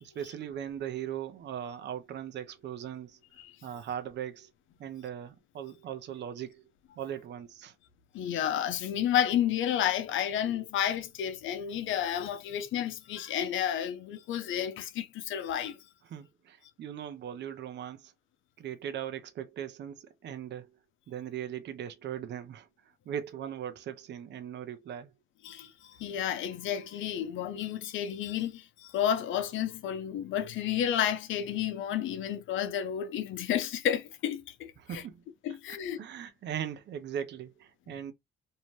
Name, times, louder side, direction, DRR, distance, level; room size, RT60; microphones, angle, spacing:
voice 1, 0.0-3.2 3.6-4.5 4.8-6.7 7.0-7.7 16.1-18.1 18.6-20.7 21.1-22.7 23.1-25.1 34.8-35.2 35.7-38.1, right 9 dB, 60° right, 0.6 m, -39 dB
voice 2, 8.1-15.8 25.4-35.0 35.4-36.0, left 10 dB, 80° left, 0.6 m, -31 dB
2.7 x 2.1 x 3.0 m
cardioid pair, 90°, 20 cm